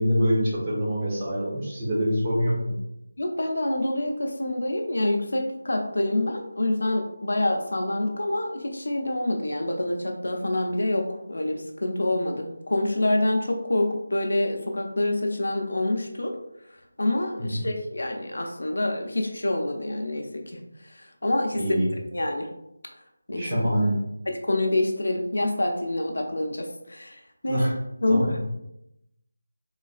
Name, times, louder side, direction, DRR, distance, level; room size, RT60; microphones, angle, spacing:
voice 1, 0.0-2.8 17.4-17.6 21.6-21.9 23.4-23.9 27.5-27.7 28.1-28.4, equal, 20° right, -7 dB, 1.0 m, -25 dB
voice 2, 3.2-16.3 17.0-21.6 22.1-22.5 23.3-23.6 24.3-27.6 28.0-28.4, left 1 dB, 75° left, 3 dB, 0.7 m, -27 dB
4.0 x 3.1 x 2.4 m, 0.84 s
figure-of-eight pair, 180°, 0 cm